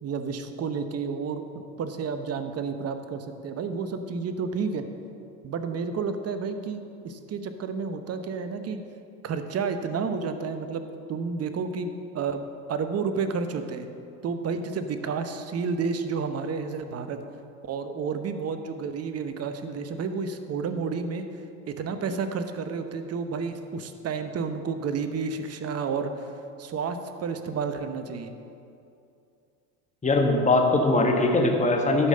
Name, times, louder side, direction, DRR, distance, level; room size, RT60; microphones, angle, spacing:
voice 1, 0.0-1.4 1.8-4.8 5.4-8.8 9.2-12.4 12.7-13.9 14.2-17.2 17.6-26.3 26.6-28.3, right 5 dB, 35° right, 8 dB, 0.9 m, -31 dB
voice 2, 30.0-32.1, left 2 dB, 15° left, 1 dB, 1.5 m, -21 dB
11.5 x 5.1 x 6.6 m, 2.6 s
hypercardioid pair, 90°, 46 cm